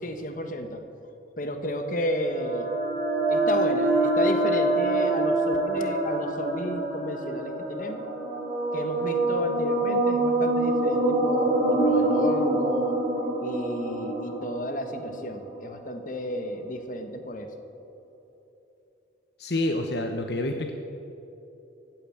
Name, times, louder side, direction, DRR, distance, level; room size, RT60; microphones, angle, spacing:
voice 1, 0.0-0.8 1.4-2.7 3.3-8.0 8.7-13.0 13.4-17.5, left 1 dB, 45° left, 6 dB, 1.4 m, -32 dB
sound 1, 2.0-15.7, right 2 dB, 40° right, 3.4 m, -26 dB
voice 2, 19.4-20.7, left 1 dB, 60° left, 4 dB, 1.0 m, -28 dB
15.5 x 9.2 x 8.6 m, 3.0 s
head